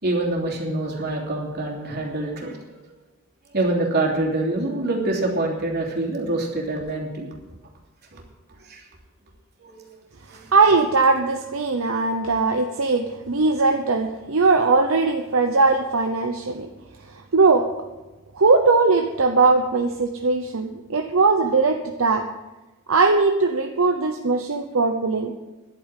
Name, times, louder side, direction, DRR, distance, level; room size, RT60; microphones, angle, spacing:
voice 1, 0.0-2.6 3.5-7.3 8.1-8.2 8.7-8.8 9.6-9.8 10.3-10.4, right 2 dB, 50° right, -1 dB, 3.1 m, -25 dB
voice 2, 10.5-16.7 17.3-17.7 18.3-22.3 22.9-25.3, right 3 dB, 70° right, 4 dB, 0.9 m, -20 dB
11.0 x 8.8 x 8.3 m, 1.1 s
head